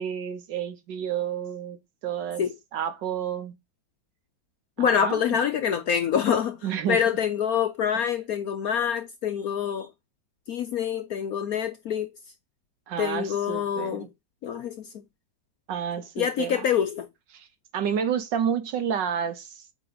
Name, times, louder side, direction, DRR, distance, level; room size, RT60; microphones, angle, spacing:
voice 1, 0.0-2.4 2.7-3.5 4.8-5.4 6.6-7.0 7.9-8.1 12.9-14.1 15.7-16.6 17.3-17.5 17.7-19.6, right 8 dB, 65° right, 1.6 m, -30 dB
voice 2, 4.8-6.6 6.9-9.9 10.5-12.1 13.0-14.1 14.4-15.0 16.2-17.1, left 8 dB, 65° left, 0.9 m, -26 dB
8.1 x 3.0 x 3.9 m
omnidirectional pair, 2.1 m